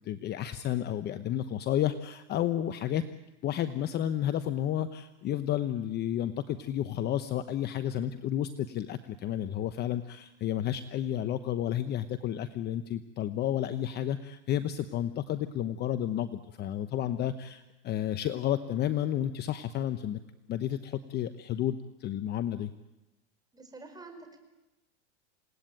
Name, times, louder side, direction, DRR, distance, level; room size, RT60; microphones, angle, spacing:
voice 1, 0.0-3.0 3.4-20.2 20.5-22.7, left 11 dB, 30° left, 11 dB, 1.0 m, -31 dB
voice 2, 23.5-24.4, right 3 dB, 10° right, 5 dB, 5.1 m, -47 dB
28.0 x 18.5 x 9.2 m, 1.0 s
hypercardioid pair, 125°, 35 cm